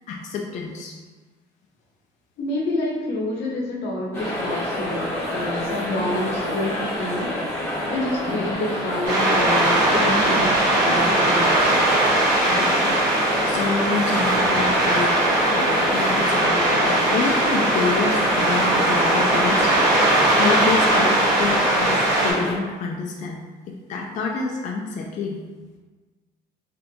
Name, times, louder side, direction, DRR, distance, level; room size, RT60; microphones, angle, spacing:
voice 1, 0.1-1.0 5.8-5.9 8.3-8.5 12.5-13.0 13.4-19.7 20.4-21.1 21.4-23.4 23.7-25.4, left 4 dB, 45° left, 0 dB, 0.4 m, -28 dB
voice 2, 2.4-7.3 7.9-11.8 21.0-21.1, left 1 dB, 85° left, -2 dB, 0.8 m, -28 dB
sound 1, 4.1-22.5, left 1 dB, 15° left, 1.1 m, -28 dB
sound 2, 9.0-22.3, right 1 dB, 75° right, 1.3 m, -20 dB
3.3 x 2.6 x 2.7 m, 1.3 s
cardioid pair, 110°, 17 cm